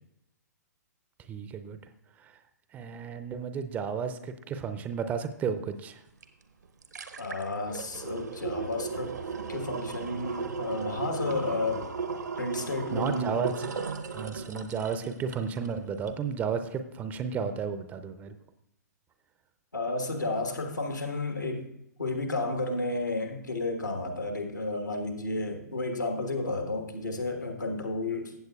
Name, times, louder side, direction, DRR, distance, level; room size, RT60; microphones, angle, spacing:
voice 1, 1.3-1.8 2.2-2.4 2.7-6.0 12.9-13.5 14.1-18.4, right 6 dB, 15° right, 10 dB, 0.5 m, -33 dB
sound 1, 6.2-6.3 6.6-15.7 16.1-16.2, right 5 dB, 70° right, 0.8 m, -36 dB
voice 2, 7.2-9.2 9.5-11.9 12.4-13.4 19.7-21.7 22.0-28.3, left 2 dB, 80° left, 4 dB, 1.4 m, -32 dB
15.0 x 7.8 x 2.3 m, 0.80 s
figure-of-eight pair, 115°, 10 cm